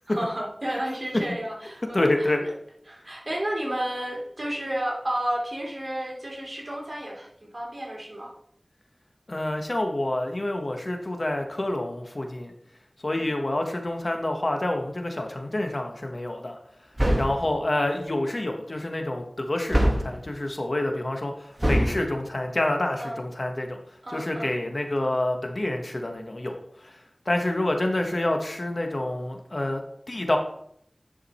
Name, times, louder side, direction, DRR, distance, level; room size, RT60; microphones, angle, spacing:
voice 1, 0.1-2.5 2.9-8.3 13.1-13.3 23.0-23.2 24.0-24.5, right 1 dB, 50° right, -2 dB, 3.0 m, -32 dB
voice 2, 1.9-2.4 9.3-12.5 13.0-16.6 17.2-23.8 24.1-27.0 27.2-29.8 30.1-30.4, left 1 dB, 55° left, 4 dB, 1.2 m, -28 dB
sound 1, 17.0-17.5 19.7-20.2 21.6-22.0, equal, 30° right, 1.5 m, -23 dB
10.0 x 5.0 x 4.3 m, 0.68 s
wide cardioid pair, 45°, 0 cm